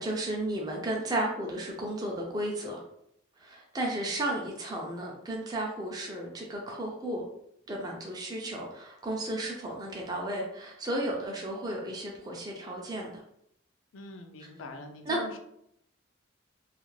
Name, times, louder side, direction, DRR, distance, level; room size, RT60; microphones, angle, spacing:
voice 1, 0.0-2.8 3.4-7.2 7.7-13.2 15.1-15.2, right 1 dB, 20° right, -1 dB, 0.4 m, -33 dB
voice 2, 13.9-15.4, left 2 dB, 90° left, 6 dB, 0.4 m, -42 dB
2.4 x 2.4 x 3.1 m, 0.74 s
head